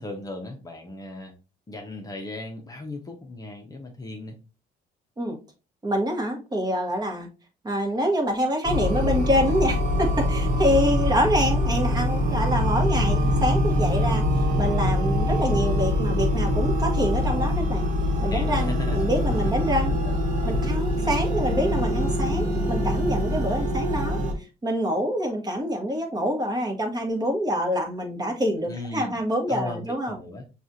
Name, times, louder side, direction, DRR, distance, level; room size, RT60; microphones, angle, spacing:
voice 1, 0.0-1.3 1.7-4.4 18.3-19.0 19.3-19.7 20.0-20.4 21.0-21.1 28.6-29.2 29.5-30.4, left 2 dB, 20° left, 2 dB, 0.7 m, -37 dB
voice 2, 5.8-7.3 7.6-14.2 14.6-17.9 18.2-19.9 20.4-24.2 24.6-30.2, equal, 25° right, 3 dB, 1.1 m, -26 dB
sound 1, 8.6-24.3, left 1 dB, 45° right, 1.2 m, -24 dB
6.0 x 2.4 x 2.6 m, 0.31 s
cardioid pair, 110°, 17 cm